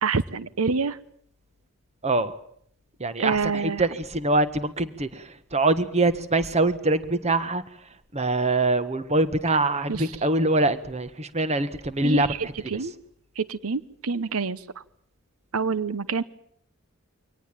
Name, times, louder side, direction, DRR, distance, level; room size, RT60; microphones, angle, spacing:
voice 1, 0.0-1.0 3.2-3.9 9.9-10.2 12.0-12.9 13.4-14.6 15.5-16.2, right 4 dB, 85° right, 17 dB, 0.9 m, -27 dB
voice 2, 2.0-2.4 3.0-5.2 5.5-7.6 8.1-12.5, right 2 dB, 30° right, 13 dB, 1.5 m, -24 dB
24.5 x 19.0 x 9.0 m, 0.68 s
head